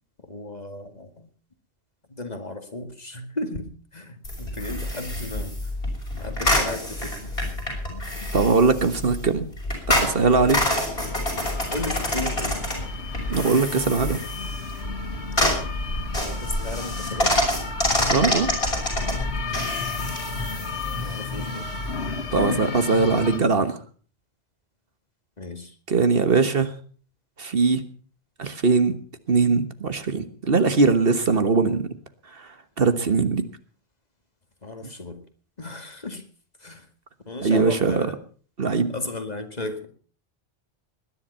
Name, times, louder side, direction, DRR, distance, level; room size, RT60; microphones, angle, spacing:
voice 1, 0.2-1.3 2.1-5.6 6.2-8.0 11.7-12.7 16.4-17.4 17.9-18.0 18.5-18.6 21.0-21.7 25.4-25.8 34.6-35.2 35.6-36.2 36.6-36.9 37.3-38.2 38.9-39.9, left 2 dB, 40° left, 6 dB, 2.3 m, -35 dB
sound 1, 4.2-22.5, left 1 dB, 60° left, 6.6 m, -27 dB
voice 2, 8.3-9.4 10.0-10.6 13.3-14.2 18.1-18.5 22.3-23.8 25.9-26.7 27.4-27.8 28.4-28.9 29.3-31.9 32.3-32.5 32.8-33.4 37.4-38.1 38.6-38.9, right 4 dB, 60° right, 10 dB, 1.6 m, -21 dB
sound 2, 10.0-23.4, left 4 dB, 85° left, 2.4 m, -34 dB
20.5 x 11.0 x 5.6 m, 0.42 s
omnidirectional pair, 1.1 m